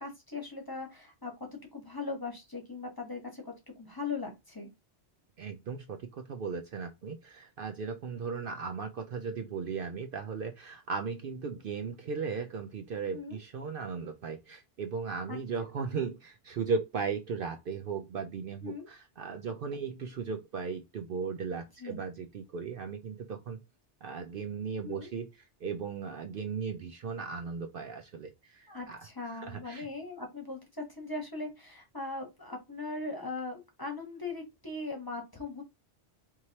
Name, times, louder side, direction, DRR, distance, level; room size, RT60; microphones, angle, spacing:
voice 1, 0.0-4.7 13.1-13.4 15.3-15.4 18.6-18.9 21.8-22.0 24.8-25.1 28.7-35.6, left 3 dB, 20° left, 1.0 m, -39 dB
voice 2, 5.4-23.6 24.0-25.3 25.6-29.9, right 5 dB, 60° right, 0.7 m, -37 dB
4.8 x 3.0 x 2.7 m
omnidirectional pair, 1.2 m